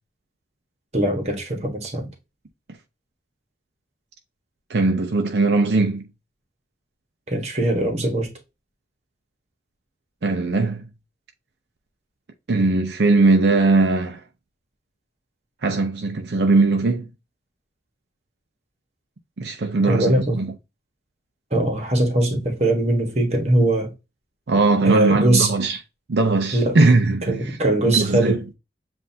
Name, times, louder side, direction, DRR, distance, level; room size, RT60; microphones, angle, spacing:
voice 1, 0.9-2.1 7.3-8.3 19.8-20.4 21.5-23.9 24.8-25.5 26.5-26.8 27.3-28.5, right 1 dB, 35° right, 1.3 m, -21 dB
voice 2, 4.7-6.0 10.2-10.8 12.5-14.2 15.6-17.1 19.4-20.5 24.5-25.8 26.1-27.6 27.9-28.4, right 3 dB, 70° right, 0.6 m, -19 dB
7.6 x 2.6 x 2.7 m
head